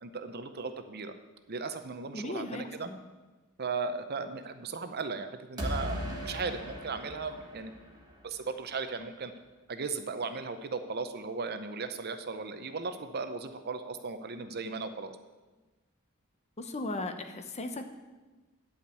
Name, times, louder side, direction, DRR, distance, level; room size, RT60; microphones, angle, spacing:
voice 1, 0.0-1.1 1.5-2.9 3.6-7.7 8.2-9.3 9.7-15.1, right 4 dB, 50° right, 9 dB, 0.7 m, -36 dB
voice 2, 2.1-3.0 16.6-18.0, left 2 dB, 30° left, 7 dB, 0.8 m, -37 dB
sound 1, 5.6-8.5, equal, 20° right, 1.6 m, -38 dB
10.5 x 5.1 x 8.3 m, 1.2 s
head